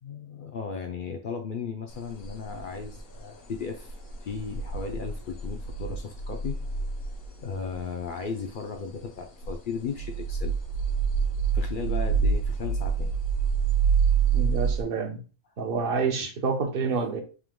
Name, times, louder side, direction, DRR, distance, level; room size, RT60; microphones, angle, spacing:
voice 1, 0.0-6.6 7.4-10.5 11.5-13.1 16.2-16.3, left 5 dB, 65° left, 0.5 m, -36 dB
sound 1, 1.9-7.8 8.2-8.6 9.0-9.1 9.4-9.6 9.9-14.8, right 6 dB, 85° left, 1.3 m, -27 dB
voice 2, 14.3-15.2 15.6-17.2, right 4 dB, 50° right, 0.8 m, -28 dB
3.7 x 2.8 x 3.6 m
omnidirectional pair, 1.4 m